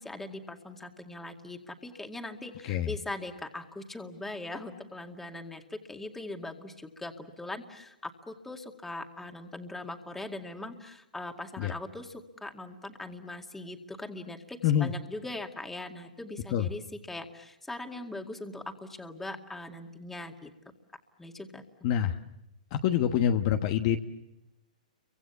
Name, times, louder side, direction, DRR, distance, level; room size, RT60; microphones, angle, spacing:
voice 1, 0.0-16.8 17.1-20.5 21.2-21.6, left 2 dB, 5° left, 4 dB, 2.2 m, -41 dB
voice 2, 21.8-22.2 22.7-24.0, left 10 dB, 45° left, 6 dB, 1.3 m, -26 dB
30.0 x 24.5 x 7.1 m, 0.90 s
hypercardioid pair, 125°, 4 cm